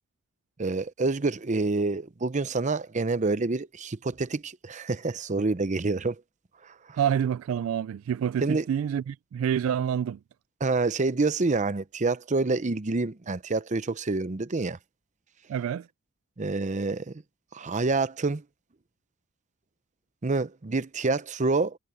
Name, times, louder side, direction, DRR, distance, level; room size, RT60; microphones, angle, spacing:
voice 1, 0.6-6.2 8.4-8.6 10.6-14.8 16.4-17.1 17.5-18.4 20.2-21.8, right 3 dB, 35° right, 0.7 m, -27 dB
voice 2, 7.0-10.2 15.5-15.9, right 9 dB, 80° right, 0.3 m, -27 dB
head